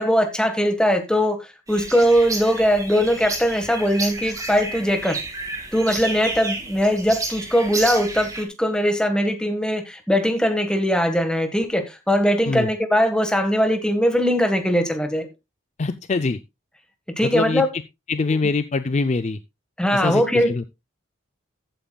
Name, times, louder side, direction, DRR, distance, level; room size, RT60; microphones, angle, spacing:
voice 1, 0.0-1.4 1.7-5.2 5.7-15.3 17.2-17.7 18.3-18.4 19.8-20.5, equal, 5° left, 1.5 m, -20 dB
sound 1, 1.7-8.4, right 2 dB, 15° right, 2.7 m, -31 dB
voice 2, 15.8-16.4 17.2-17.6 18.1-19.4 19.9-20.6, left 3 dB, 35° left, 0.4 m, -23 dB
14.0 x 8.9 x 2.3 m
head